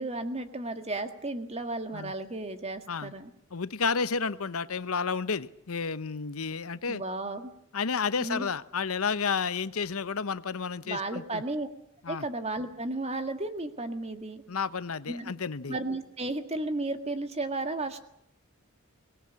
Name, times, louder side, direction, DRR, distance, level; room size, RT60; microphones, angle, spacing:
voice 1, 0.0-3.3 6.9-7.5 8.2-8.5 10.9-11.7 12.1-14.4 15.1-15.3 15.7-18.0, right 2 dB, 30° right, 8 dB, 1.9 m, -34 dB
voice 2, 3.5-7.0 7.7-11.4 12.0-12.2 14.5-15.8, left 5 dB, 80° left, 14 dB, 0.9 m, -31 dB
23.5 x 19.5 x 8.6 m, 0.73 s
head